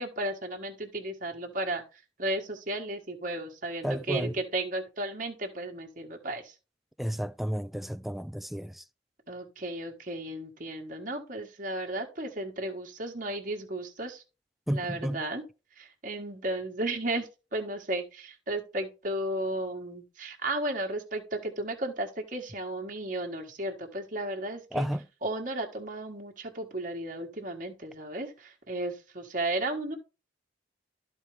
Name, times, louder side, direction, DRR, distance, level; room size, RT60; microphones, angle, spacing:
voice 1, 0.0-6.5 9.3-14.2 14.7-15.4 15.8-24.9 25.2-30.0, right 1 dB, 45° right, 1.4 m, -34 dB
voice 2, 3.8-4.3 7.0-8.8 14.7-15.2 24.7-25.0, equal, ahead, 0.3 m, -32 dB
13.0 x 4.4 x 3.3 m
head